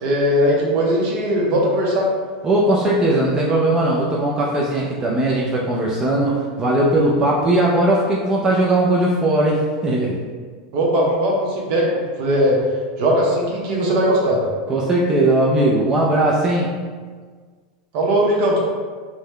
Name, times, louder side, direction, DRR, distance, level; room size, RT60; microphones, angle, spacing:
voice 1, 0.0-2.1 10.7-12.6 13.0-14.4 17.9-18.6, equal, 55° right, -2 dB, 0.9 m, -19 dB
voice 2, 2.4-10.2 14.7-16.8, right 1 dB, 20° right, -4 dB, 0.4 m, -18 dB
3.8 x 2.2 x 3.1 m, 1.6 s
supercardioid pair, 135°, 4 cm